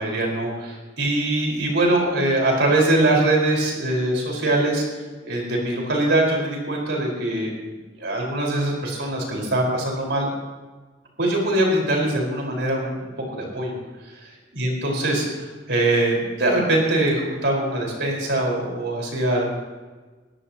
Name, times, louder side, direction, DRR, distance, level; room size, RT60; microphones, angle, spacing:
voice 1, 0.0-4.8 5.2-7.5 8.0-10.3 11.2-13.7 14.5-19.6, right 1 dB, 70° right, -1 dB, 5.1 m, -22 dB
22.5 x 17.0 x 3.0 m, 1.3 s
head